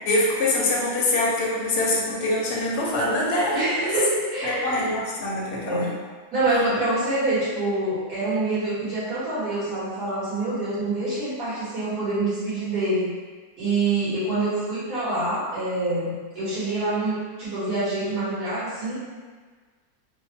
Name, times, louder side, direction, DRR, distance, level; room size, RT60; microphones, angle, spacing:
voice 1, 0.1-3.5 4.4-5.9, left 2 dB, 60° left, -5 dB, 0.8 m, -24 dB
voice 2, 3.5-4.8 5.6-5.9 6.3-13.1 13.6-18.9, right 2 dB, 70° right, -12 dB, 1.9 m, -26 dB
3.6 x 2.1 x 2.8 m, 1.4 s
omnidirectional pair, 1.7 m